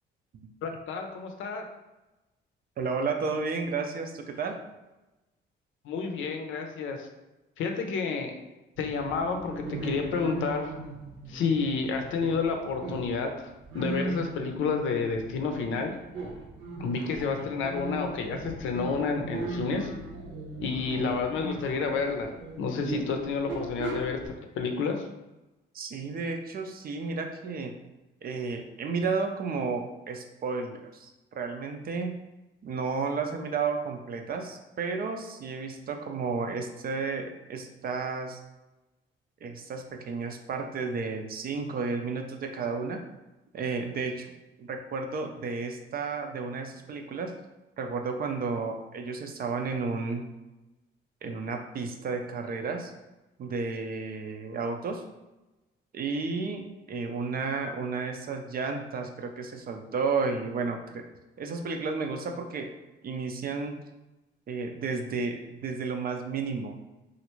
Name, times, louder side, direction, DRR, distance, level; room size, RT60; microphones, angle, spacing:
voice 1, 0.6-1.6 5.8-7.1 7.6-8.4 8.8-10.7 11.3-13.5 13.7-15.9 16.8-19.9 20.6-22.3 22.6-25.1, left 5 dB, 80° left, 4 dB, 0.6 m, -30 dB
voice 2, 2.8-4.6 25.7-27.8 28.2-32.2 32.6-38.4 39.4-43.0 43.5-44.3 44.6-47.3 47.8-50.2 51.2-52.9 53.4-55.0 55.9-61.0 61.4-62.7 63.0-63.8 64.5-66.7, right 4 dB, 50° right, 4 dB, 0.5 m, -32 dB
sound 1, 8.8-24.3, right 2 dB, 70° right, 0.9 m, -38 dB
3.1 x 2.5 x 3.0 m, 1.0 s
cardioid pair, 90°, 20 cm